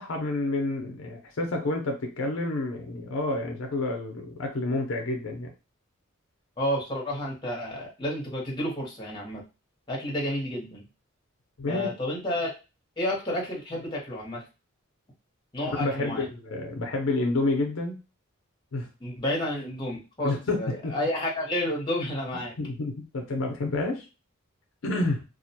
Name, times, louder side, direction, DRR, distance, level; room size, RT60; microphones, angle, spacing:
voice 1, 0.0-5.5 11.6-11.9 15.8-18.0 18.7-18.9 20.2-20.9 22.6-24.1 24.8-25.2, left 2 dB, 65° left, 2 dB, 0.5 m, -29 dB
voice 2, 6.6-9.4 9.9-10.8 11.7-12.5 13.0-14.4 15.5-16.2 19.0-22.5, left 1 dB, 20° left, -2 dB, 0.8 m, -30 dB
2.4 x 2.1 x 2.7 m, 0.29 s
head